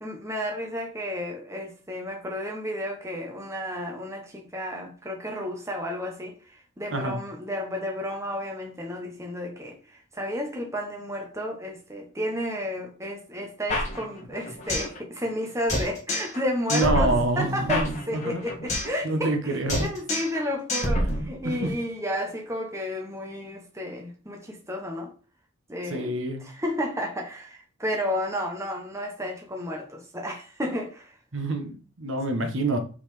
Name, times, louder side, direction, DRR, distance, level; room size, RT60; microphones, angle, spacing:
voice 1, 0.0-25.1 25.7-26.1 26.4-31.2, left 1 dB, 15° right, 1.2 m, -32 dB
sound 1, 13.7-15.0 15.2-15.3 15.7-16.4 16.7-19.0 19.2-19.4 19.7-20.4 20.7-21.7, left 1 dB, 35° left, 2.2 m, -28 dB
voice 2, 16.7-18.4 19.0-19.9 21.0-21.1 21.4-21.7 25.9-26.5 31.3-32.8, right 2 dB, 70° right, 1.3 m, -27 dB
5.6 x 4.2 x 4.9 m
head